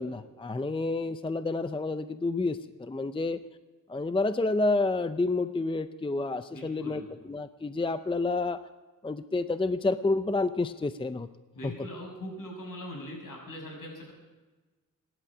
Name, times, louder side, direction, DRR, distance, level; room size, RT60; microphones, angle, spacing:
voice 1, 0.0-3.4 3.9-8.6 9.0-11.3 11.6-11.7, left 3 dB, 15° left, 11 dB, 0.5 m, -29 dB
voice 2, 6.5-7.1 11.6-14.1, left 1 dB, 70° left, 0 dB, 6.4 m, -41 dB
25.5 x 11.0 x 4.9 m, 1.2 s
wide cardioid pair, 110°, 34 cm